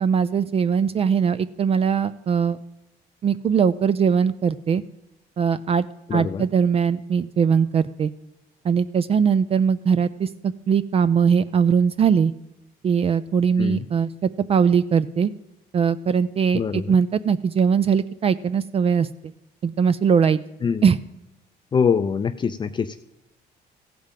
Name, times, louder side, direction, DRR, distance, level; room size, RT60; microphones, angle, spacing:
voice 1, 0.0-2.6 3.2-4.8 5.4-5.9 6.1-8.1 8.6-12.3 12.8-15.3 15.7-19.1 19.6-20.4 20.8-21.0, right 6 dB, 35° right, 14 dB, 0.4 m, -20 dB
voice 2, 6.1-6.4 13.6-13.9 16.5-17.0 20.6-20.8 21.7-23.0, left 6 dB, 25° left, 8 dB, 0.4 m, -24 dB
15.5 x 5.1 x 7.4 m, 0.97 s
cardioid pair, 110°, 17 cm